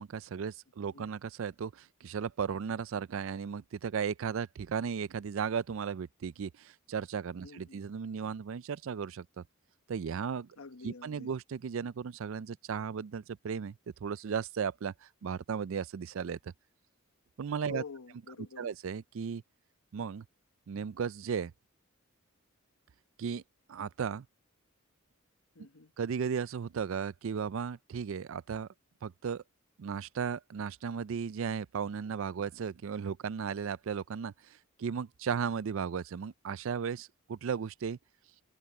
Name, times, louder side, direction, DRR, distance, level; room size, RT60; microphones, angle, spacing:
voice 1, 0.0-9.4 9.9-10.5 10.8-13.8 14.0-16.5 17.4-17.8 18.6-19.4 19.9-20.3 20.7-21.5 23.2-23.4 23.7-24.3 26.0-28.7 29.0-29.4 29.8-38.0, right 6 dB, 65° right, 0.4 m, -35 dB
voice 2, 7.4-7.8 10.6-11.3 17.6-18.7 25.5-25.9, left 4 dB, 75° left, 1.1 m, -47 dB
head